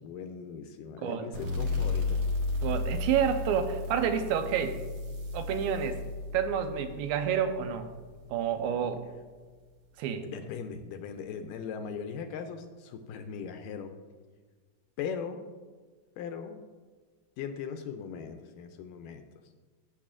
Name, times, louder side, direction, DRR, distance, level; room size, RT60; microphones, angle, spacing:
voice 1, 0.0-2.2 8.8-9.0 10.2-13.9 15.0-15.5 16.2-16.6 17.4-19.3, left 6 dB, 80° left, 7 dB, 2.0 m, -39 dB
sound 1, 1.3-8.6, left 3 dB, 60° right, 2.8 m, -34 dB
voice 2, 2.6-4.8 5.3-6.0 6.3-7.9 8.3-9.0 10.0-10.3, right 8 dB, 90° right, 8 dB, 2.5 m, -29 dB
15.0 x 7.4 x 2.5 m, 1.4 s
omnidirectional pair, 4.1 m